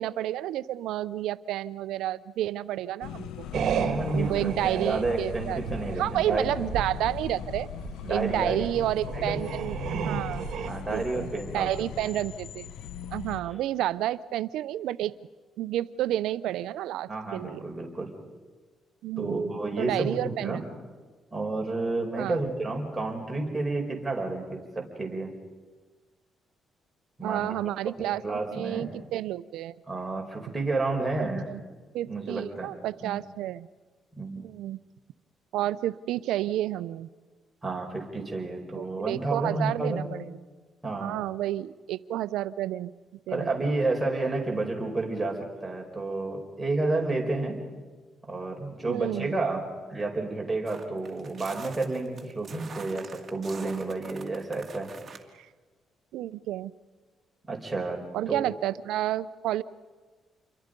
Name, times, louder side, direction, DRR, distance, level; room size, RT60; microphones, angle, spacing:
voice 1, 0.0-3.5 4.1-5.6 6.0-7.7 8.1-10.5 10.9-12.7 13.1-15.1 15.6-17.7 19.0-20.6 22.1-22.4 27.2-28.2 28.5-29.8 31.2-31.6 31.9-33.7 34.4-34.8 35.5-37.1 38.8-40.3 41.0-42.9 43.3-43.7 48.9-49.3 55.4-55.5 56.1-56.7 58.1-59.6, right 13 dB, 90° right, 17 dB, 0.6 m, -30 dB
sound 1, 3.0-13.4, left 9 dB, 85° left, 0.9 m, -39 dB
voice 2, 3.5-6.5 8.0-8.7 9.1-9.4 10.6-11.7 12.0-12.1 13.4-13.6 17.1-18.1 19.2-20.6 21.3-25.3 27.2-27.5 28.0-28.9 29.9-31.5 32.1-32.7 33.0-33.2 34.1-34.4 37.6-40.0 40.8-41.1 43.3-47.6 48.3-49.6 49.9-54.9 57.5-58.0 58.3-58.4, right 2 dB, 10° right, 0 dB, 4.9 m, -30 dB
sound 2, 3.5-10.7, right 8 dB, 70° right, 1.6 m, -34 dB
sound 3, 50.7-55.2, right 5 dB, 40° right, 2.3 m, -45 dB
28.0 x 23.5 x 5.3 m, 1.3 s
cardioid pair, 90°, 0 cm